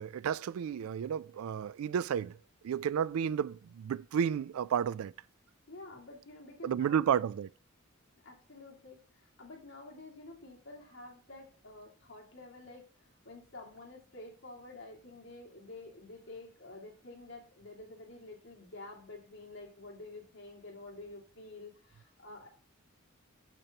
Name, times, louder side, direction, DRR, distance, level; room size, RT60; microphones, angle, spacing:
voice 1, 0.0-2.4 2.6-5.1 6.6-7.5, right 8 dB, 85° right, 0.3 m, -32 dB
voice 2, 5.7-7.1 8.2-12.8 13.2-22.5, left 2 dB, 60° left, 2.3 m, -49 dB
8.8 x 6.7 x 2.9 m
head